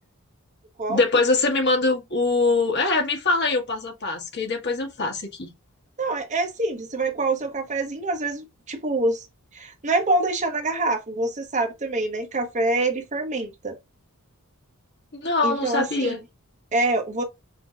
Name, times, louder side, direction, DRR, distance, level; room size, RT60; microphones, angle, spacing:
voice 1, 0.9-5.5 15.2-16.2, left 3 dB, 55° left, 1.6 m, -23 dB
voice 2, 6.0-9.3 9.5-13.7 15.4-16.2 16.7-17.2, right 2 dB, 35° right, 0.9 m, -25 dB
5.7 x 2.8 x 2.4 m
head